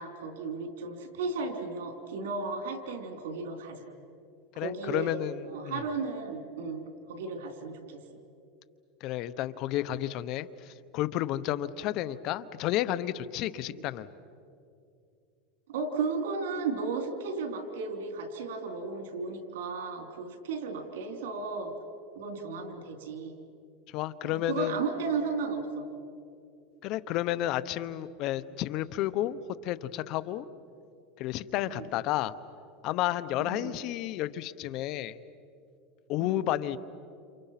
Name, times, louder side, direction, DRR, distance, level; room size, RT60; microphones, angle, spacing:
voice 1, 0.0-3.9 4.5-5.2 5.5-8.0 13.7-13.8 15.7-21.7 22.1-23.3 24.2-25.8 31.5-31.9 33.4-33.7 36.2-36.4, right 4 dB, 85° right, 5 dB, 3.8 m, -34 dB
voice 2, 4.6-5.8 9.0-14.1 23.9-24.8 26.8-30.5 31.2-32.3 32.8-35.2 36.1-36.8, left 13 dB, 50° left, 15 dB, 0.9 m, -31 dB
30.0 x 29.0 x 5.9 m, 2.5 s
supercardioid pair, 140°, 0 cm